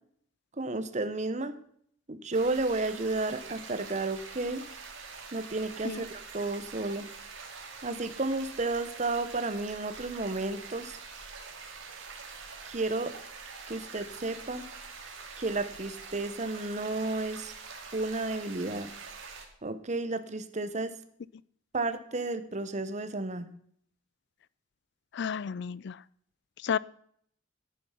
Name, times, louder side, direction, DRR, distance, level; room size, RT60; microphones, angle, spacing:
voice 1, 0.6-1.5 2.1-4.6 5.3-7.1 7.8-11.0 12.6-13.1 13.7-14.6 15.4-17.5 17.9-18.9 19.6-21.0 21.7-23.5, right 2 dB, 35° right, 11 dB, 1.0 m, -32 dB
sound 1, 2.3-19.4, right 5 dB, 75° right, 2.3 m, -45 dB
voice 2, 25.1-26.0 26.6-26.8, left 7 dB, 60° left, 21 dB, 0.4 m, -31 dB
11.0 x 9.3 x 5.7 m, 0.64 s
head